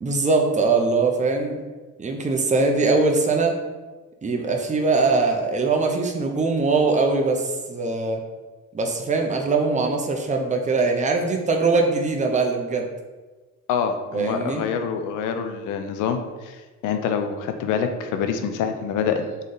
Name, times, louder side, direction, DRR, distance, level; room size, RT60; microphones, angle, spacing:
voice 1, 0.0-1.6 2.0-3.6 4.2-8.2 8.7-12.9 14.1-14.6, right 3 dB, 25° right, 2 dB, 0.7 m, -22 dB
voice 2, 13.7-16.6 16.8-19.3, left 7 dB, 90° left, 7 dB, 0.6 m, -26 dB
4.0 x 3.2 x 3.9 m, 1.2 s
cardioid pair, 90°, 30 cm